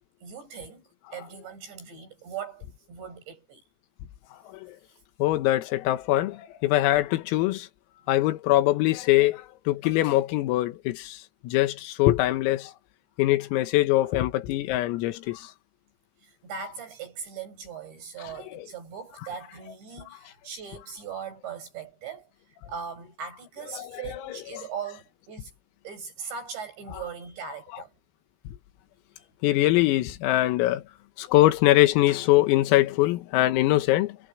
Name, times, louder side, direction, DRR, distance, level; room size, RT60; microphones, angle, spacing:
voice 1, 0.2-0.8 1.1-3.6 14.0-14.1 16.2-22.3 22.7-25.5 25.8-27.9 29.2-29.3, right 6 dB, 55° right, 9.6 m, -39 dB
voice 2, 5.2-7.7 8.1-12.7 13.2-15.5 18.2-18.7 23.7-24.0 29.4-30.8 31.2-34.2, left 16 dB, 90° left, 4.0 m, -23 dB
omnidirectional pair, 5.9 m